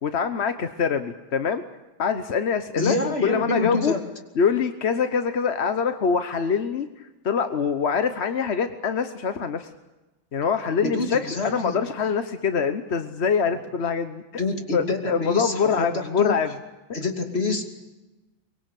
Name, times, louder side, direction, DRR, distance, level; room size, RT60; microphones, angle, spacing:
voice 1, 0.0-1.6 2.0-4.0 4.3-9.7 10.3-14.2 14.7-16.5, left 6 dB, 45° left, 9 dB, 0.9 m, -24 dB
voice 2, 2.8-4.0 10.8-11.8 14.4-16.4 16.9-17.6, left 3 dB, 30° left, 4 dB, 3.0 m, -27 dB
24.0 x 22.5 x 8.4 m, 1.1 s
omnidirectional pair, 2.3 m